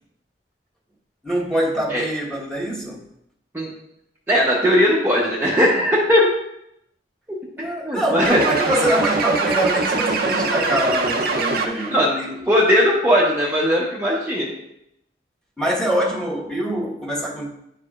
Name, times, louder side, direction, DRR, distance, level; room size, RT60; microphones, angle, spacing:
voice 1, 1.2-3.0 7.6-12.6 15.6-17.5, right 1 dB, 5° left, -5 dB, 1.3 m, -24 dB
voice 2, 4.3-6.3 7.6-8.4 11.9-14.5, equal, 15° right, -5 dB, 0.9 m, -18 dB
sound 1, 8.2-12.0, right 3 dB, 55° right, 0.7 m, -23 dB
10.5 x 4.8 x 2.4 m, 0.80 s
head